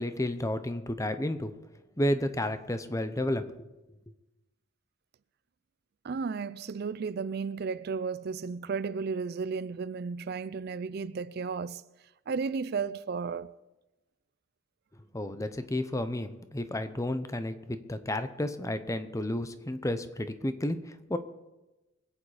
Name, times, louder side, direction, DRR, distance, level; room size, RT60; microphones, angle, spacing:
voice 1, 0.0-1.5 2.0-3.5 15.1-21.2, left 1 dB, 15° left, 0.8 m, -31 dB
voice 2, 6.0-11.8 12.3-13.5, right 5 dB, 55° right, 0.4 m, -33 dB
23.5 x 8.7 x 5.0 m
head